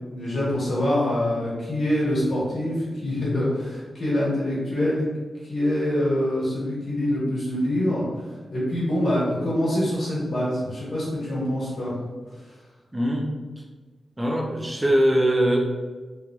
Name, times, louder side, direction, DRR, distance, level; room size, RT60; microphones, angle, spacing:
voice 1, 0.1-5.0 5.4-8.0 8.5-11.9, left 1 dB, 65° left, -8 dB, 1.5 m, -25 dB
voice 2, 12.9-13.3 14.2-15.6, equal, 20° right, 0 dB, 0.5 m, -21 dB
3.0 x 2.6 x 2.3 m, 1.3 s
cardioid pair, 85°, 0 cm